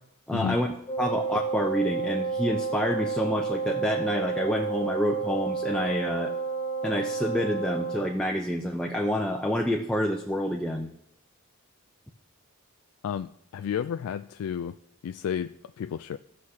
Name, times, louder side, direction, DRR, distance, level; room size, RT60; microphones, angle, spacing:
voice 1, 0.3-0.7 1.0-6.3 6.8-10.9, equal, 5° left, 0 dB, 0.6 m, -28 dB
Wind instrument woodwind instrument, 0.9-8.2, right 4 dB, 25° left, 1.4 m, -30 dB
voice 2, 13.0-14.8 15.0-16.2, left 8 dB, 80° left, 9 dB, 0.3 m, -32 dB
16.5 x 6.4 x 2.8 m, 0.77 s
head